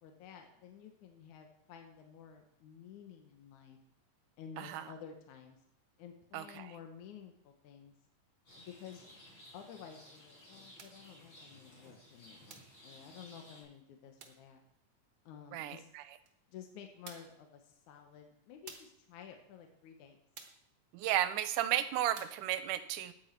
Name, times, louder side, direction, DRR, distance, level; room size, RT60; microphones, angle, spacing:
voice 1, 0.0-3.8 4.4-5.6 6.0-8.0 8.6-9.1 9.5-14.6 15.3-15.9 16.5-20.2, left 8 dB, 75° left, 4 dB, 2.4 m, -52 dB
voice 2, 6.3-6.7 15.5-16.0 20.9-23.1, right 12 dB, 85° right, 12 dB, 2.2 m, -34 dB
Rain, 8.5-13.6, equal, 40° left, 4.9 m, -57 dB
sound 1, 10.8-11.1 12.5-12.8 14.2-14.5 16.3-16.4 17.1-17.4 18.7-19.0 20.4-20.7 22.2-22.5, right 6 dB, 55° right, 1.6 m, -52 dB
13.5 x 9.3 x 4.5 m, 0.74 s
omnidirectional pair, 3.7 m